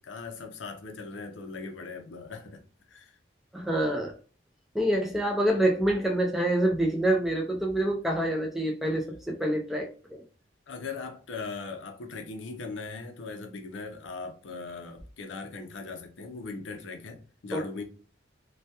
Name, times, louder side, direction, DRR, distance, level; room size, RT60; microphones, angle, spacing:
voice 1, 0.0-2.6 2.9-3.2 10.7-17.8, left 4 dB, 80° left, 0.5 m, -39 dB
voice 2, 3.5-4.1 4.7-10.2 17.5-17.6, right 1 dB, ahead, 0.3 m, -26 dB
2.2 x 2.2 x 2.7 m
head